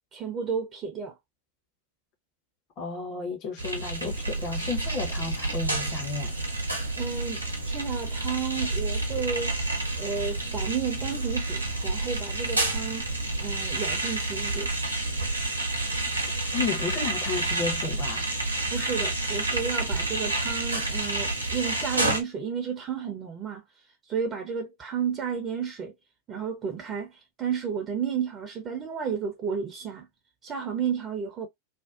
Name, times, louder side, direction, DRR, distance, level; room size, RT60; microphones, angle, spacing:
voice 1, 0.1-1.1 7.0-14.7 18.7-23.6 24.1-25.9 26.3-30.1 30.4-31.5, right 7 dB, 30° right, 0.6 m, -32 dB
voice 2, 2.8-6.3 16.5-18.3, left 4 dB, 35° left, 0.8 m, -32 dB
sound 1, 3.6-22.2, right 2 dB, 85° right, 0.7 m, -29 dB
2.5 x 2.2 x 2.4 m
figure-of-eight pair, 90°, 0 cm